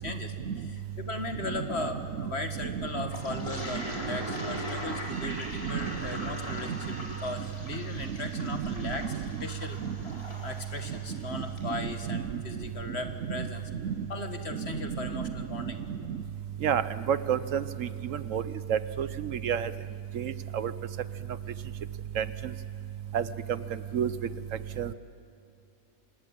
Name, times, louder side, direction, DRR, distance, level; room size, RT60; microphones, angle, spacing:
voice 1, 0.0-6.7 7.0-9.1 9.4-9.8 10.4-13.6 14.1-15.8, left 2 dB, 50° left, 6 dB, 2.0 m, -37 dB
voice 2, 1.4-1.8 2.6-3.5 3.7-4.2 5.1-6.3 6.7-7.0 7.4-7.5 8.1-9.3 9.8-9.9 10.9-11.0 11.3-12.4 13.2-14.1 14.5-16.2 16.6-18.4 18.7-19.7 20.1-20.7 22.2-22.3 23.1-23.6 23.9-24.1 24.8-24.9, right 8 dB, 70° right, 14 dB, 1.1 m, -32 dB
Toilet flush, 3.1-11.7, left 1 dB, 25° left, 4.7 m, -41 dB
Trumpet, 5.1-7.4, equal, 25° right, 1.2 m, -49 dB
26.0 x 20.5 x 8.8 m, 2.6 s
omnidirectional pair, 1.5 m